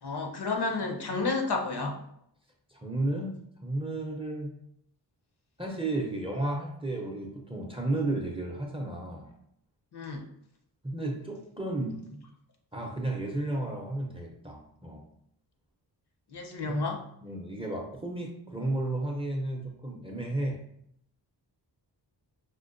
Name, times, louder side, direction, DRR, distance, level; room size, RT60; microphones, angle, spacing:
voice 1, 0.0-2.0 9.9-10.2 16.3-17.0, left 3 dB, 60° left, 2 dB, 0.7 m, -31 dB
voice 2, 2.7-4.5 5.6-9.3 10.8-12.0 12.7-15.0 16.7-16.8 17.2-20.6, right 2 dB, 15° right, 0 dB, 0.5 m, -33 dB
5.0 x 2.1 x 2.5 m, 0.71 s
wide cardioid pair, 105°, 44 cm